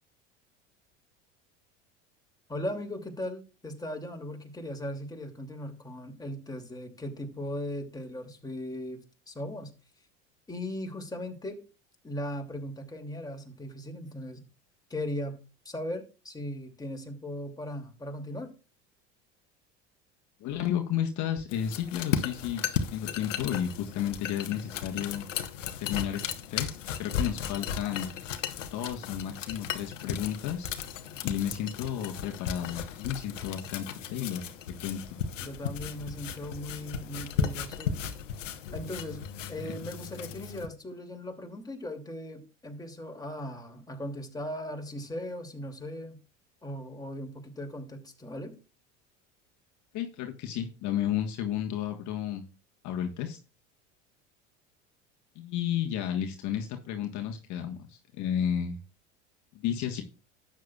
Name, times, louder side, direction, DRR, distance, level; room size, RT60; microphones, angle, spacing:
voice 1, 2.5-9.7 10.5-11.6 12.0-14.4 14.9-18.5 35.4-38.0 38.7-39.2 39.5-46.2 46.6-48.5, left 1 dB, 10° left, 2.7 m, -38 dB
voice 2, 20.4-25.3 25.8-26.2 26.5-28.1 28.7-30.7 31.2-35.0 39.6-39.7 49.9-52.4 52.8-53.4 55.3-58.8 59.6-60.0, left 10 dB, 50° left, 1.5 m, -32 dB
sound 1, 21.5-40.7, left 8 dB, 85° left, 1.2 m, -35 dB
12.5 x 9.1 x 2.4 m
hypercardioid pair, 80°, 37 cm